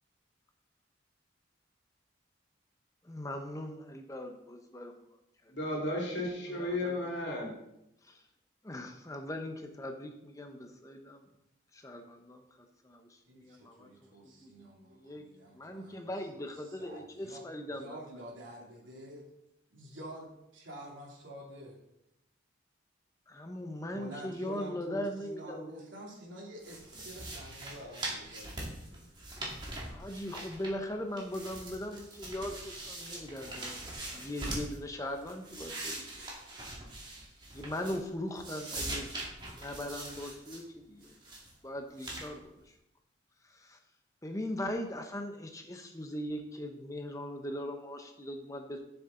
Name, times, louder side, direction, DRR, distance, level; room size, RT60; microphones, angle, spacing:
voice 1, 3.0-5.0 5.4-5.5 6.5-6.9 8.0-8.2 8.6-11.3 11.7-12.4 12.8-13.9 14.2-14.5 14.9-15.2 15.5-18.0 23.3-25.9 29.8-36.3 37.5-39.1 39.4-41.2 41.6-42.8 43.4-43.8 44.2-48.8, left 1 dB, 15° left, 4 dB, 0.8 m, -40 dB
voice 2, 5.5-7.5, left 1 dB, 65° left, -1 dB, 2.7 m, -34 dB
voice 3, 13.3-16.4 16.8-17.4 17.8-19.2 19.7-21.8 23.9-29.1, right 1 dB, 80° right, -2 dB, 3.0 m, -48 dB
sound 1, 26.6-30.9 31.2-34.8 35.2-38.1 38.4-40.6 41.0-41.5 42.0-42.3, right 2 dB, 25° right, 2.2 m, -42 dB
11.5 x 7.1 x 3.8 m, 0.83 s
head